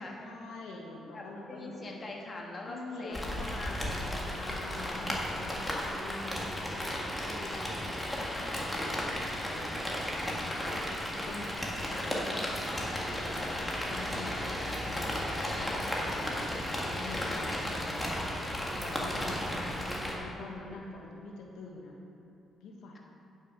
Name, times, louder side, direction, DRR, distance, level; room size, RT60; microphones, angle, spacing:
voice 1, 0.2-2.0 2.6-3.9 4.3-5.7 6.0-12.4 12.7-19.4 19.7-21.9 22.6-23.0, left 2 dB, 85° left, -1 dB, 1.2 m, -45 dB
voice 2, 1.1-4.4 4.8-5.1 5.7-5.9 11.9-12.1 19.5-19.7, left 2 dB, 35° left, -1 dB, 1.5 m, -43 dB
Rain, 3.1-20.1, left 1 dB, 15° left, 1.8 m, -34 dB
9.9 x 6.3 x 5.4 m, 2.8 s
cardioid pair, 90°, 0 cm